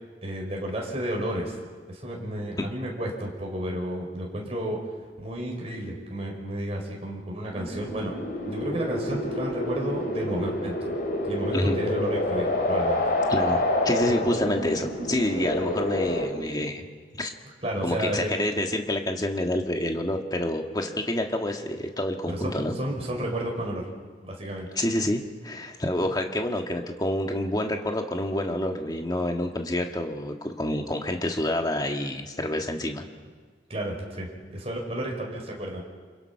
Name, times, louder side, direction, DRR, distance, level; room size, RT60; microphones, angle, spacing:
voice 1, 0.2-1.6 1.9-4.8 5.2-8.2 8.5-10.9 11.2-13.0 14.2-14.3 17.6-18.3 22.3-22.5 22.8-23.8 24.2-24.7 33.7-35.8, right 1 dB, 35° right, -1 dB, 5.0 m, -32 dB
sound 1, 7.5-16.3, left 1 dB, 55° left, 4.2 m, -28 dB
voice 2, 13.3-16.9 17.2-17.3 17.8-22.8 24.8-33.0, left 1 dB, 20° left, 3 dB, 1.8 m, -28 dB
29.0 x 26.5 x 5.9 m, 1.5 s
head